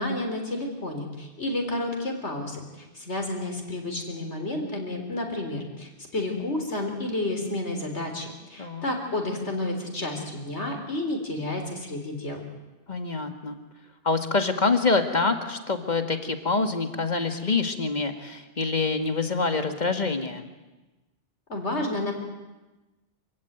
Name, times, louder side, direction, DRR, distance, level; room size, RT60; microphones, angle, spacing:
voice 1, 0.0-12.5 21.5-22.1, left 2 dB, 70° left, 3 dB, 4.1 m, -31 dB
voice 2, 12.9-13.6 14.0-20.5, left 4 dB, 40° left, 7 dB, 2.0 m, -26 dB
26.0 x 16.5 x 9.3 m, 1.1 s
omnidirectional pair, 1.2 m